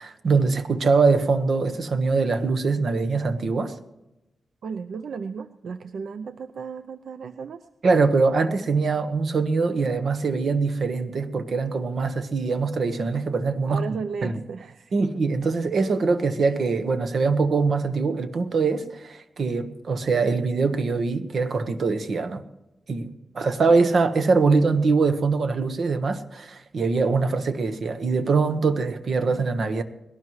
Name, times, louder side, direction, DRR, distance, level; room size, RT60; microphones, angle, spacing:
voice 1, 0.0-3.7 7.8-13.8 14.2-14.3 14.9-22.4 22.9-29.8, right 4 dB, 65° right, 1.3 m, -23 dB
voice 2, 4.6-7.7 13.7-15.1, right 5 dB, 80° right, 0.6 m, -34 dB
21.0 x 18.0 x 3.2 m
wide cardioid pair, 105°, 0 cm